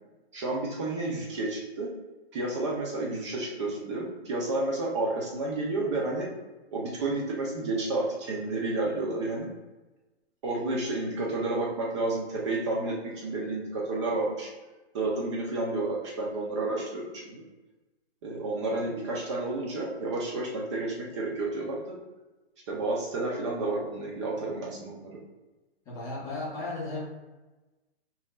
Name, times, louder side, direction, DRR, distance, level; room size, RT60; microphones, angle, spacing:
voice 1, 0.3-1.9 2.3-6.3 6.7-9.5 10.4-14.5 14.9-17.4 18.2-21.8 22.7-25.2, right 2 dB, 25° right, -3 dB, 0.6 m, -31 dB
voice 2, 25.9-27.0, left 2 dB, 10° left, -7 dB, 0.6 m, -35 dB
5.6 x 2.7 x 2.3 m, 1.1 s
hypercardioid pair, 155°, 33 cm